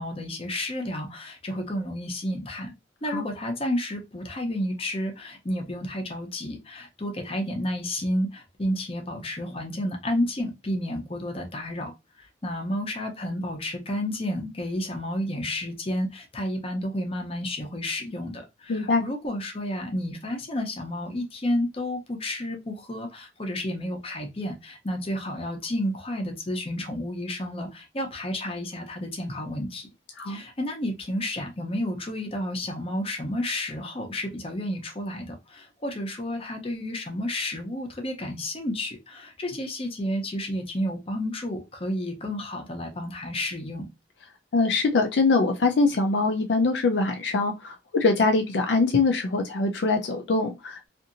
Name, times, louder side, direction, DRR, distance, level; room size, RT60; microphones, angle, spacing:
voice 1, 0.0-2.7 3.0-11.9 12.4-29.9 30.3-43.9, left 1 dB, 30° left, 0.7 m, -31 dB
voice 2, 18.7-19.0 30.2-30.4 44.5-50.9, left 3 dB, 60° left, 0.4 m, -23 dB
2.7 x 2.5 x 2.5 m
head